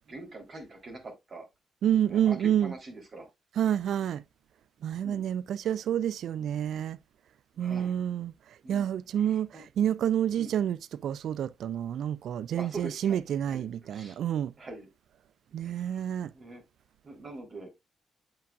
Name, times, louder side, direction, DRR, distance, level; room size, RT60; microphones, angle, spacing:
voice 1, 0.1-1.4 2.0-3.3 5.0-5.3 7.5-8.0 8.6-8.9 9.2-9.6 10.4-10.5 12.5-13.2 13.5-14.2 14.6-14.9 15.6-16.0 16.3-16.6 17.0-17.7, right 3 dB, 55° right, 3.3 m, -43 dB
voice 2, 1.8-2.7 3.6-4.2 4.8-7.0 7.6-8.3 8.7-10.8 11.0-14.5 15.5-16.3, right 10 dB, 75° right, 0.3 m, -28 dB
8.5 x 5.9 x 2.3 m
supercardioid pair, 50°, 0 cm